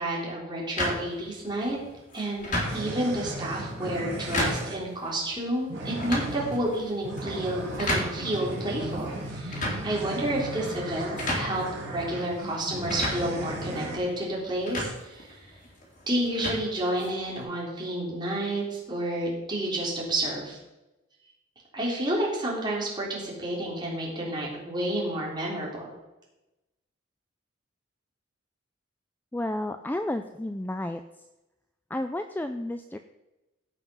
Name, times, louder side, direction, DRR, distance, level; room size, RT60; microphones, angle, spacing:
voice 1, 0.0-1.8 2.1-15.4 16.1-20.6 21.7-25.9, right 1 dB, 20° right, -4 dB, 3.2 m, -30 dB
sound 1, 0.8-17.4, left 1 dB, 40° left, 3.3 m, -35 dB
sound 2, 2.6-4.8 5.7-14.0, right 1 dB, 55° right, 4.7 m, -36 dB
voice 2, 29.3-31.0 31.9-33.0, left 1 dB, 10° left, 8 dB, 0.3 m, -31 dB
16.0 x 5.8 x 5.5 m, 1.0 s
head